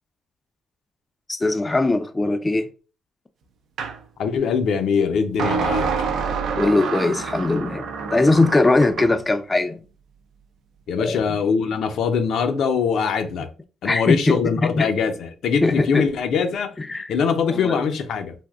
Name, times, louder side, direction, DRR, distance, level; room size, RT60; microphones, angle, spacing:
voice 1, 1.3-2.7 6.5-9.8 11.0-11.3 13.8-14.9 15.6-16.0 16.8-17.1 17.5-17.8, left 2 dB, 20° left, 0.3 m, -20 dB
sound 1, 3.8-4.0 5.4-9.2, right 5 dB, 70° right, 0.4 m, -27 dB
voice 2, 4.2-5.9 10.9-13.5 13.8-18.3, left 6 dB, 70° left, 0.5 m, -22 dB
3.4 x 2.6 x 2.4 m
cardioid pair, 90°, 0 cm